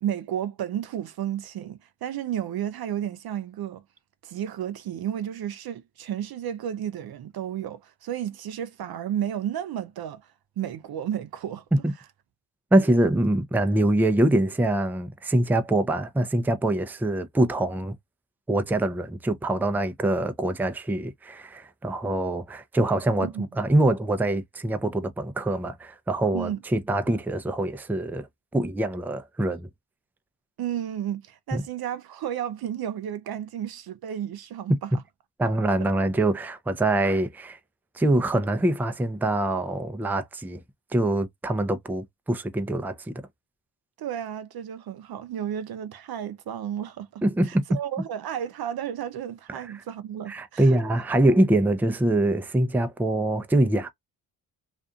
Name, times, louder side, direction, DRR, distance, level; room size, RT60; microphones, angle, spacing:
voice 1, 0.0-3.8 4.2-11.6 12.8-12.9 23.2-23.4 26.3-26.6 30.6-35.0 44.0-50.8, right 10 dB, 50° right, 0.5 m, -32 dB
voice 2, 12.7-17.9 18.5-28.3 28.5-29.7 31.5-31.6 35.4-37.6 37.9-40.6 40.9-43.1 47.2-47.6 50.3-53.9, right 1 dB, 5° right, 0.5 m, -24 dB
2.5 x 2.5 x 2.4 m
supercardioid pair, 55°, 47 cm